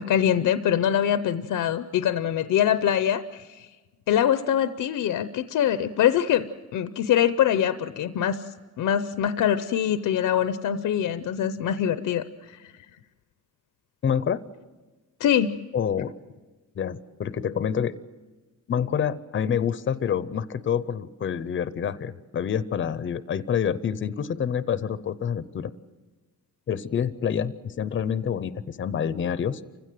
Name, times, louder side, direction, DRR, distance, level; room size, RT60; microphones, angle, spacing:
voice 1, 0.0-3.7 4.1-6.4 6.7-8.4 8.8-12.2 12.6-12.7 15.2-15.5, left 10 dB, 75° left, 12 dB, 0.7 m, -23 dB
voice 2, 14.0-14.4 15.7-16.1 16.8-18.0 18.7-25.7 26.7-29.6, left 8 dB, 40° left, 15 dB, 0.6 m, -27 dB
28.5 x 16.0 x 7.6 m, 1.2 s
wide cardioid pair, 145°, 32 cm